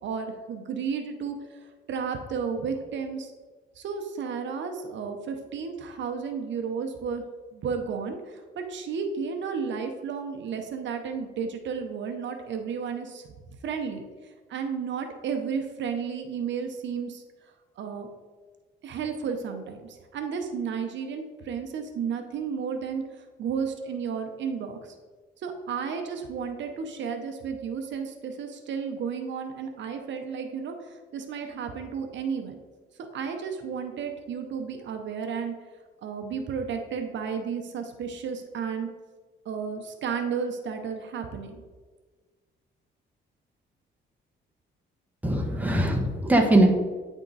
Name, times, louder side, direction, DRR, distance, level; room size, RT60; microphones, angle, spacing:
voice 1, 0.0-1.3 1.9-3.3 3.8-7.2 7.5-13.2 13.6-14.0 14.5-17.2 17.8-18.1 18.8-23.0 23.4-24.9 25.4-32.6 33.0-35.5 36.0-38.9 39.4-41.6, right 6 dB, 65° right, 5 dB, 0.7 m, -32 dB
voice 2, 45.2-46.7, right 1 dB, 10° right, 2 dB, 1.1 m, -21 dB
9.4 x 3.6 x 4.0 m, 1.4 s
cardioid pair, 90°, 20 cm